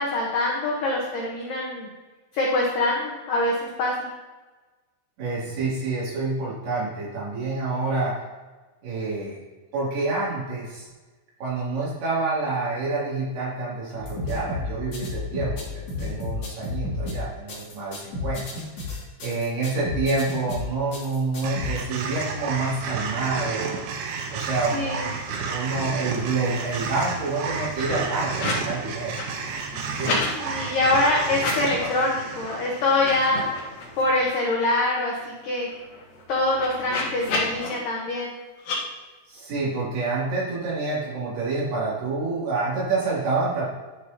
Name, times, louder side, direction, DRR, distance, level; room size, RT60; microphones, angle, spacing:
voice 1, 0.0-1.9 2.3-4.0 24.7-25.0 30.4-33.4 34.0-35.2 35.4-35.7 36.3-38.3, left 2 dB, 80° left, -3 dB, 2.0 m, -24 dB
voice 2, 5.2-8.2 8.8-9.4 9.7-10.9 11.4-18.4 19.2-23.8 24.3-25.1 25.5-29.2 30.0-30.2 30.5-31.0 39.3-43.6, right 3 dB, 55° right, -7 dB, 4.4 m, -28 dB
sound 1, 14.0-21.8, left 3 dB, 40° left, 2.4 m, -32 dB
sound 2, 21.4-33.8, right 5 dB, 75° right, 3.1 m, -32 dB
sound 3, 25.2-25.4 25.6-26.3 26.6-28.7 29.0-30.3 31.3-32.0 32.4-32.5 32.9-34.2 34.6-34.7 35.0-37.7 38.6-38.8, left 3 dB, 55° left, 2.7 m, -32 dB
11.5 x 7.0 x 2.9 m, 1.2 s
omnidirectional pair, 5.8 m